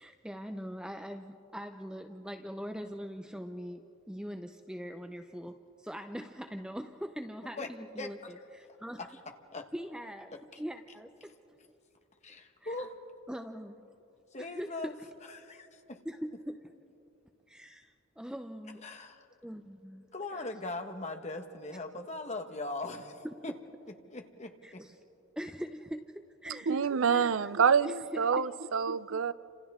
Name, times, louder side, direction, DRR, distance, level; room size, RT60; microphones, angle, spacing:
voice 1, 0.0-9.1 9.7-11.3 12.6-12.7 13.3-13.8 14.4-14.9 16.1-16.7 17.5-18.8 19.4-20.1 20.3-20.5 24.6-24.9 25.4-28.5, equal, 5° right, 6 dB, 0.5 m, -42 dB
voice 2, 8.0-8.3 9.0-9.7 10.5-10.6 12.2-13.0 14.3-14.9 15.2-16.0 18.8-19.3 20.1-23.5 24.1-24.8, left 2 dB, 35° left, 5 dB, 1.2 m, -40 dB
voice 3, 26.7-29.3, right 6 dB, 70° right, 16 dB, 0.5 m, -27 dB
30.0 x 26.5 x 3.6 m, 2.8 s
head